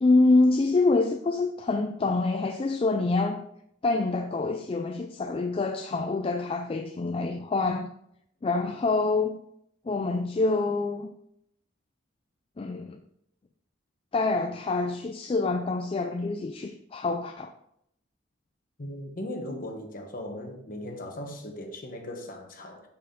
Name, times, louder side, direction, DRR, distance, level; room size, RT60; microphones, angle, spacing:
voice 1, 0.0-3.5 3.8-7.9 8.4-9.4 9.9-11.1 12.6-13.0 14.1-17.5, left 3 dB, 30° left, 0.3 m, -26 dB
voice 2, 18.8-22.9, left 1 dB, 45° left, 1.2 m, -38 dB
6.5 x 5.7 x 3.9 m
head